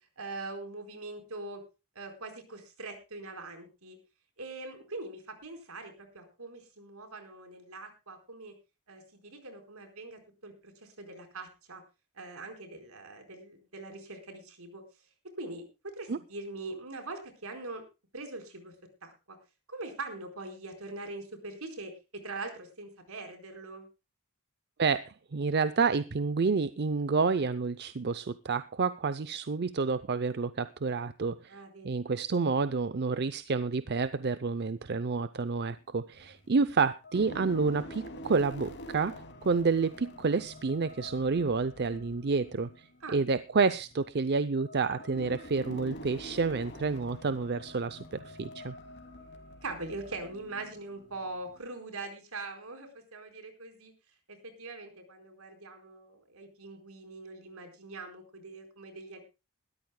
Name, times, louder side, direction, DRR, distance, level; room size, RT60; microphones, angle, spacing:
voice 1, 0.2-1.6 1.9-4.0 4.4-8.5 8.9-11.8 12.1-14.8 15.4-17.8 18.1-18.7 19.0-19.4 19.7-23.9 31.5-32.0 43.0-43.2 49.6-53.9 54.3-59.2, right 2 dB, 75° right, 6 dB, 4.5 m, -42 dB
voice 2, 24.8-31.6 31.8-48.8, right 4 dB, 50° right, 14 dB, 0.6 m, -29 dB
sound 1, 35.7-36.5 37.0-51.6, equal, 50° left, 2.6 m, -47 dB
21.0 x 13.5 x 2.2 m, 0.29 s
head